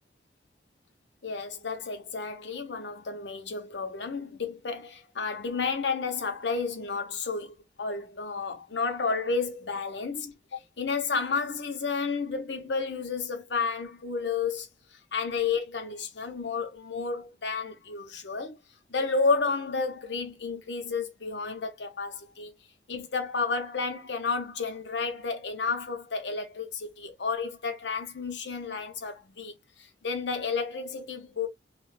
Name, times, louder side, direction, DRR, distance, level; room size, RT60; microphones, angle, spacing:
voice 1, 1.2-10.3 10.8-14.7 15.1-18.6 18.9-22.5 22.9-29.5 29.8-31.5, left 4 dB, 80° left, 0.8 m, -31 dB
2.4 x 2.3 x 3.3 m
head